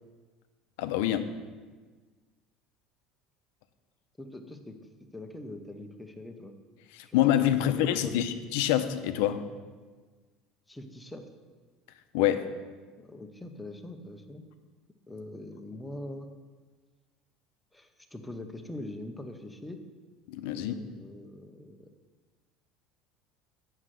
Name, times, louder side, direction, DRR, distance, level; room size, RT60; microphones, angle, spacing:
voice 1, 0.8-1.3 6.9-9.4 12.1-12.5 20.3-20.7, left 11 dB, 80° left, 10 dB, 0.7 m, -26 dB
voice 2, 4.2-4.8 5.1-6.5 7.1-7.2 7.7-8.3 10.7-11.2 13.0-14.4 15.1-16.3 17.7-19.8 20.6-21.9, left 1 dB, 5° left, 5 dB, 0.7 m, -43 dB
8.1 x 6.3 x 7.5 m, 1.4 s
cardioid pair, 170°, 0 cm